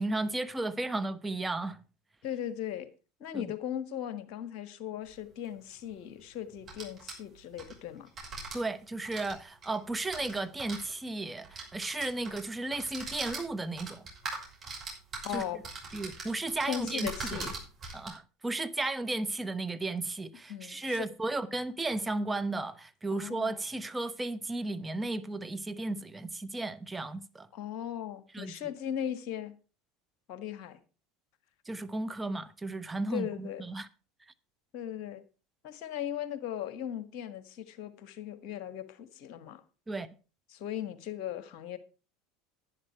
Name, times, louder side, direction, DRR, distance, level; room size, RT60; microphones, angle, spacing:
voice 1, 0.0-1.8 3.3-3.5 8.5-14.1 15.3-15.4 15.9-17.5 17.9-27.5 28.3-28.5 31.6-33.9 39.9-40.1, right 2 dB, 10° right, 1.1 m, -34 dB
voice 2, 2.2-2.9 3.2-8.1 15.2-15.6 16.7-17.5 20.5-21.1 23.1-23.6 27.5-29.5 30.3-30.8 33.1-33.6 34.7-35.2 35.6-39.6 40.5-41.8, left 10 dB, 55° left, 1.5 m, -38 dB
sound 1, 5.1-5.2 6.5-7.7 8.1-8.6 9.0-10.8 11.4-12.4 12.7-18.1, right 3 dB, 30° right, 6.1 m, -41 dB
11.0 x 10.5 x 4.6 m
figure-of-eight pair, 75°, 0 cm